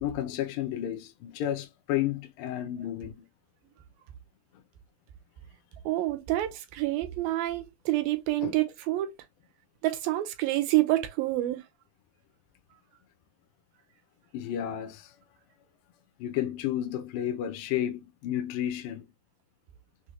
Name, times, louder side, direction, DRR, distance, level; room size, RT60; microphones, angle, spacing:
voice 1, 0.0-3.3 4.5-4.6 8.4-8.5 14.3-15.2 16.2-19.1, left 11 dB, 75° left, 2.2 m, -32 dB
voice 2, 5.9-9.1 9.8-11.6, right 16 dB, 80° right, 2.5 m, -28 dB
6.2 x 2.2 x 2.8 m
omnidirectional pair, 4.3 m